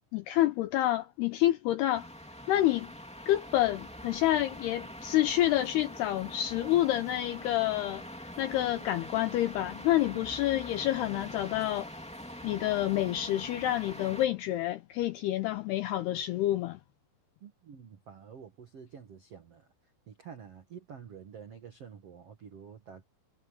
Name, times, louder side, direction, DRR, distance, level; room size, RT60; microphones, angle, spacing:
voice 1, 0.1-2.1 2.5-2.9 3.3-8.0 8.4-11.9 12.4-16.8, left 14 dB, 80° left, 2.3 m, -28 dB
sound 1, 1.9-14.2, equal, 5° left, 0.7 m, -44 dB
voice 2, 17.4-19.7 20.1-23.0, right 7 dB, 75° right, 1.4 m, -49 dB
omnidirectional pair, 5.5 m